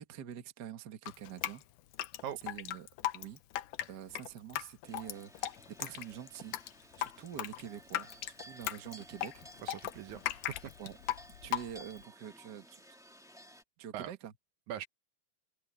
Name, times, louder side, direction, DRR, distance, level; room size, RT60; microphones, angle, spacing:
voice 1, 0.0-1.6 2.4-2.9 3.1-3.4 3.9-9.4 10.8-11.0 11.4-12.8 13.8-14.3, right 9 dB, 45° right, 1.5 m, -46 dB
Drip, 1.1-12.0, left 13 dB, 80° left, 2.4 m, -38 dB
sound 1, 4.8-13.6, equal, ahead, 1.6 m, -56 dB
voice 2, 9.6-10.5 13.9-14.1 14.7-14.9, right 10 dB, 70° right, 2.3 m, -41 dB
open air
omnidirectional pair, 3.7 m